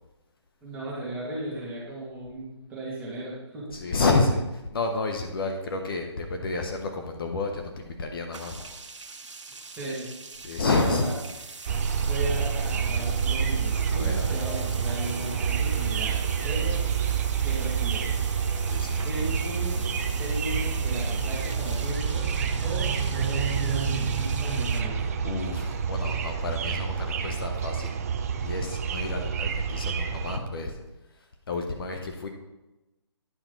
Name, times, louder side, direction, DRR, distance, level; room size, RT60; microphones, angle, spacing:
voice 1, 0.6-3.7 9.7-10.1 10.7-11.2 12.0-16.9 17.4-18.1 19.0-19.8 20.1-22.3 22.6-25.0, right 1 dB, 10° right, -7 dB, 2.2 m, -36 dB
voice 2, 3.7-8.8 10.4-11.1 13.9-14.4 18.7-19.1 25.2-28.0 28.4-30.8 31.1-32.3, left 3 dB, 50° left, 4 dB, 1.1 m, -30 dB
sound 1, 8.3-24.8, right 4 dB, 85° right, 1.0 m, -42 dB
sound 2, 11.7-30.4, right 6 dB, 30° right, 0.6 m, -28 dB
9.8 x 5.9 x 3.9 m, 1.0 s
hypercardioid pair, 160°, 15 cm